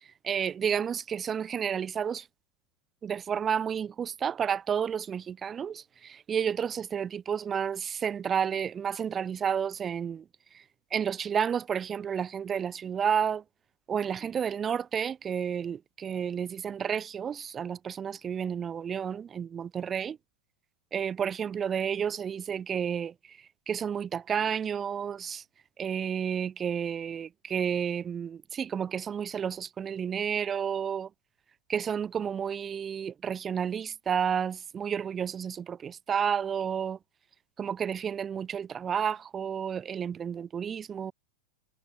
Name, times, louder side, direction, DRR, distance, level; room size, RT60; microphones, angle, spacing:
voice 1, 0.2-2.3 3.0-10.2 10.5-10.6 10.9-13.4 13.9-20.2 20.9-25.4 25.8-31.1 31.7-37.0 37.6-41.1, right 7 dB, 20° right, 7.5 m, -31 dB
figure-of-eight pair, 90°, 0 cm